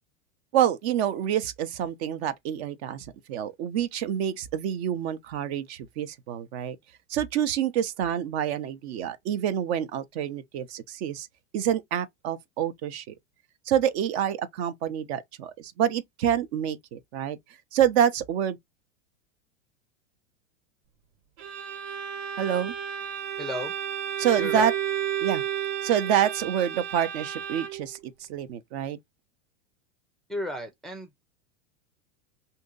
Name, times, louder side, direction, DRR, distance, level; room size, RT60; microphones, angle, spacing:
voice 1, 0.5-6.8 7.1-11.3 11.5-13.1 13.7-17.4 17.7-18.6 22.4-22.7 24.2-24.7 25.2-25.4 25.8-29.0, right 9 dB, 55° right, 0.7 m, -27 dB
Bowed string instrument, 21.4-28.0, right 9 dB, 70° right, 1.3 m, -32 dB
voice 2, 23.4-23.7 24.4-24.7 30.3-31.3, left 1 dB, ahead, 0.4 m, -34 dB
2.8 x 2.7 x 3.8 m
hypercardioid pair, 115°, 38 cm